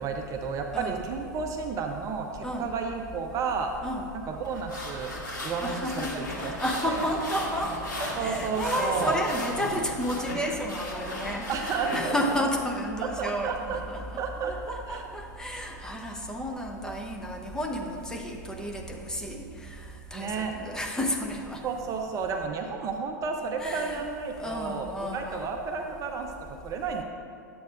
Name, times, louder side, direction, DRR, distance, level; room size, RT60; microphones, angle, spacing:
voice 1, 0.0-3.7 4.1-5.1 5.4-6.5 6.9-7.1 8.2-9.2 11.5-12.4 13.0-14.5 14.9-15.0 20.1-20.5 21.6-27.0, right 5 dB, 30° right, 4 dB, 0.7 m, -32 dB
voice 2, 0.7-1.0 2.4-2.7 3.8-4.1 5.6-7.7 8.0-14.2 14.5-21.6 23.6-24.1 24.4-25.5, equal, 5° left, 1 dB, 0.8 m, -32 dB
sound 1, 4.5-12.4, left 1 dB, 85° left, 1.9 m, -36 dB
11.5 x 7.7 x 2.5 m, 2.5 s
figure-of-eight pair, 95°, 10 cm